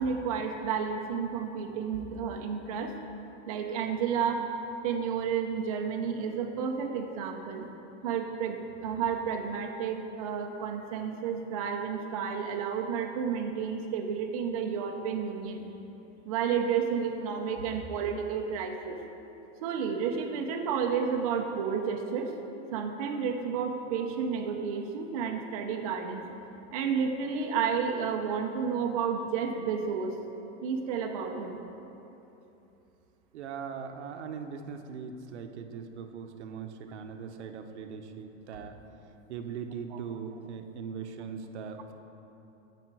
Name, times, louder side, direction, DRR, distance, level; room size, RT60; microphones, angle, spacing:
voice 1, 0.0-2.9 3.5-4.4 4.8-7.7 8.0-15.6 16.3-19.0 19.6-22.3 22.7-26.2 26.7-30.2 30.6-31.6 39.9-40.0, right 6 dB, 35° right, 2 dB, 0.5 m, -31 dB
voice 2, 33.3-38.8 39.3-41.9, right 6 dB, 80° right, 6 dB, 0.9 m, -40 dB
14.0 x 5.0 x 4.7 m, 3.0 s
supercardioid pair, 175°, 34 cm